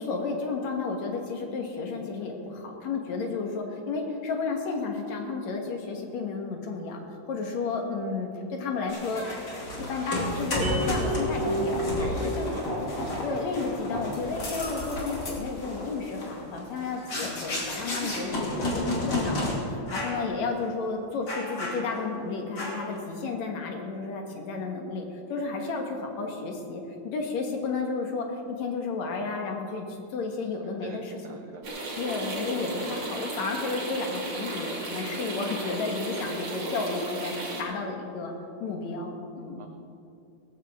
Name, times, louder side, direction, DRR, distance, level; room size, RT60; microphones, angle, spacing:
voice 1, 0.0-7.0 7.3-9.2 9.9-12.6 13.2-29.9 30.1-31.4 32.0-38.3 38.6-39.6, left 4 dB, 70° left, 2 dB, 2.7 m, -32 dB
sound 1, 8.9-19.5 19.9-20.2 20.6-20.7 21.3-22.1 22.6-23.0, left 1 dB, 35° left, 2.9 m, -32 dB
sound 2, 10.6-13.1, equal, 40° right, 2.6 m, -32 dB
voice 2, 10.8-11.2 11.8-12.8 30.1-30.2 30.6-31.7 39.6-39.7, right 7 dB, 80° right, 4 dB, 1.2 m, -43 dB
sound 3, 31.6-37.6, right 2 dB, 60° right, 4.0 m, -35 dB
18.0 x 14.5 x 3.7 m, 2.6 s
omnidirectional pair, 3.4 m